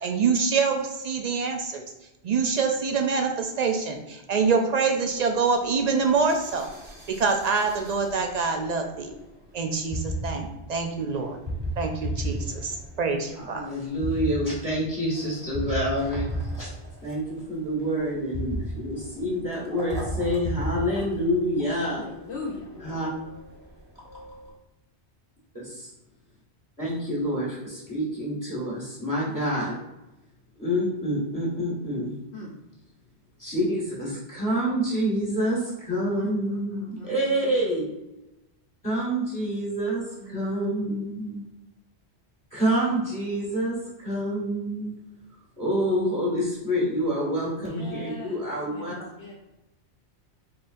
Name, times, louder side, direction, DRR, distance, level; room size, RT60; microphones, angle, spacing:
voice 1, 0.0-1.8 2.2-6.7 7.1-9.1 9.5-11.4 11.8-13.7, right 5 dB, 60° right, 4 dB, 0.4 m, -25 dB
sound 1, 5.1-24.5, right 1 dB, 25° right, 1.3 m, -37 dB
voice 2, 13.3-16.3 16.6-16.7 17.0-22.0 22.8-23.1 25.5-25.9 26.8-29.8 30.6-32.1 33.4-37.9 38.8-41.4 42.5-44.9 45.6-48.9, equal, 15° left, -5 dB, 1.4 m, -27 dB
voice 3, 21.9-22.7 32.3-32.5 36.1-37.6 40.2-40.5 47.6-48.4 48.7-49.3, left 2 dB, 75° left, -2 dB, 0.9 m, -40 dB
4.2 x 3.7 x 2.5 m, 0.96 s
omnidirectional pair, 1.2 m